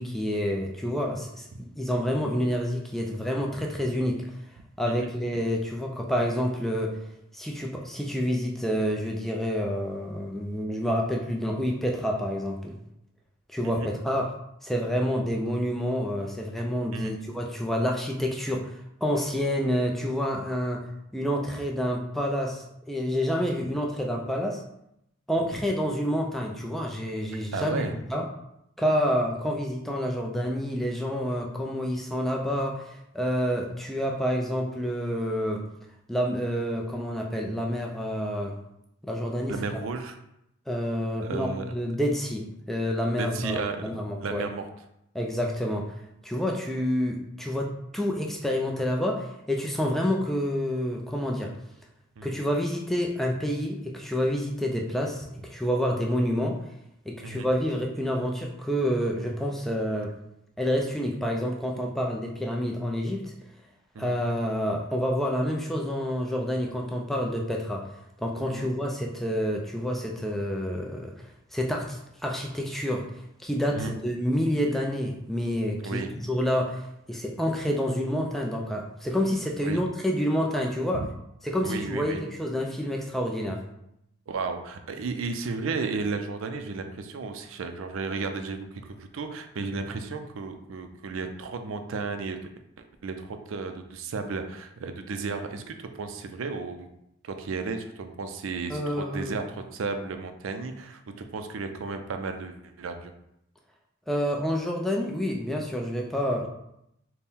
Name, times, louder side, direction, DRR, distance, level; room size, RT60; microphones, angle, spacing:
voice 1, 0.0-1.5 1.8-4.4 4.8-7.0 7.3-12.7 13.5-14.4 14.6-24.6 25.3-28.2 28.8-35.7 36.1-38.5 39.0-39.6 40.7-44.5 45.1-51.5 52.2-56.6 57.1-60.2 60.6-63.3 64.0-67.9 68.2-73.1 73.4-81.0 81.4-83.6 98.7-99.3 104.1-106.5, equal, ahead, 0 dB, 0.3 m, -28 dB
voice 2, 27.5-27.9 39.5-40.2 41.2-41.7 43.1-44.7 52.2-52.4 57.2-57.5 63.9-64.2 68.5-68.7 73.7-73.9 75.8-76.1 79.6-79.8 81.6-82.2 84.3-92.4 93.0-96.9 97.2-103.1, right 4 dB, 75° right, 7 dB, 0.4 m, -34 dB
4.2 x 2.1 x 3.5 m, 0.80 s
head